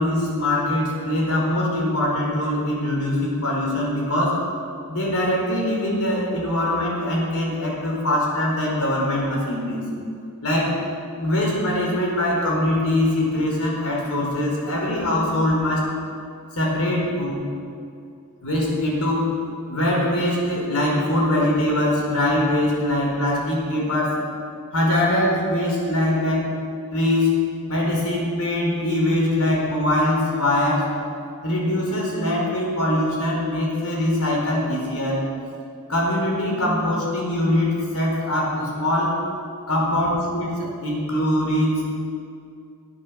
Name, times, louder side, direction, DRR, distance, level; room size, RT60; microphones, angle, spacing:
voice 1, 0.0-4.4 4.9-9.9 10.4-10.8 11.1-15.9 16.5-17.4 18.4-24.3 24.7-26.6 26.9-30.9 31.4-35.3 35.9-39.2 39.7-41.8, left 1 dB, 75° left, -2 dB, 4.7 m, -22 dB
20.5 x 9.7 x 6.4 m, 2.4 s
head